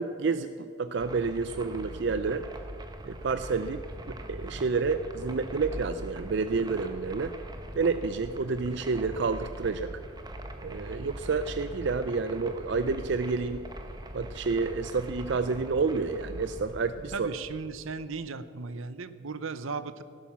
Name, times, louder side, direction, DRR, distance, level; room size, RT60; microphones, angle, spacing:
voice 1, 0.0-2.4 3.0-3.8 4.1-7.3 7.8-9.9 10.6-13.6 14.1-17.3, right 4 dB, 55° right, 11 dB, 0.4 m, -29 dB
sound 1, 1.0-18.3, right 1 dB, 20° right, 1.0 m, -42 dB
voice 2, 17.1-20.0, right 4 dB, 75° right, 14 dB, 0.8 m, -36 dB
16.0 x 11.5 x 7.1 m, 2.4 s
head